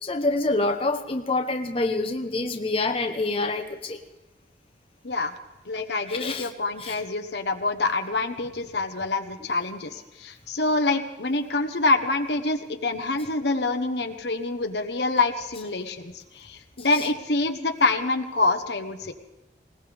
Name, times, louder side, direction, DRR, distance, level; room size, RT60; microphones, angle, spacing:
voice 1, 0.0-4.0 6.1-6.5 6.8-7.0 16.9-17.0, left 2 dB, 30° left, 4 dB, 1.1 m, -26 dB
voice 2, 5.6-19.1, left 3 dB, 70° left, 7 dB, 1.2 m, -26 dB
20.5 x 19.0 x 3.6 m, 1.1 s
head